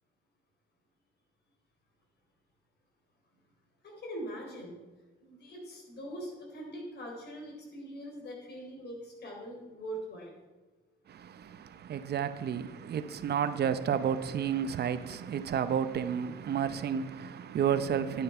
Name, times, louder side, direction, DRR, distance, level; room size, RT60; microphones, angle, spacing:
voice 1, 3.8-4.7 5.2-10.4, right 1 dB, 55° left, 3.7 m, -42 dB
voice 2, 11.1-18.2, right 8 dB, 55° right, 0.7 m, -31 dB
10.5 x 9.3 x 4.4 m
cardioid pair, 90°, 20 cm